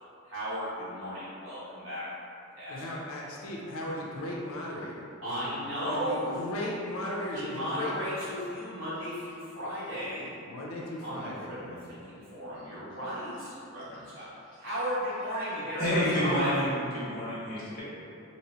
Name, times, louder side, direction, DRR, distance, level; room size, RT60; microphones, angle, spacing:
voice 1, 0.2-2.1 2.5-3.0 5.2-6.5 7.3-10.4 11.0-14.3 14.6-16.5, equal, 70° right, -12 dB, 1.2 m, -35 dB
voice 2, 2.7-5.4 5.8-8.0 10.5-11.9, left 1 dB, 80° left, -3 dB, 0.5 m, -37 dB
voice 3, 15.8-17.8, equal, 45° left, -10 dB, 1.4 m, -29 dB
3.0 x 2.9 x 2.8 m, 2.6 s
head